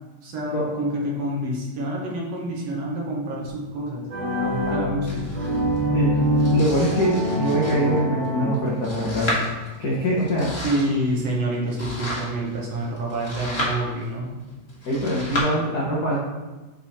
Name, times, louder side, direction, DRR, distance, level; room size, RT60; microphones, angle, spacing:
voice 1, 0.2-4.1 4.4-5.4 10.6-14.3, right 1 dB, 60° right, -3 dB, 2.1 m, -27 dB
sound 1, 4.1-9.0, equal, 80° right, 0.8 m, -25 dB
Domestic sounds home sounds, 5.1-15.4, left 1 dB, 35° left, 1.1 m, -34 dB
voice 2, 5.9-9.3 9.8-10.5 14.8-16.2, equal, 70° left, -6 dB, 0.9 m, -23 dB
7.9 x 4.0 x 4.3 m, 1.2 s
omnidirectional pair, 3.5 m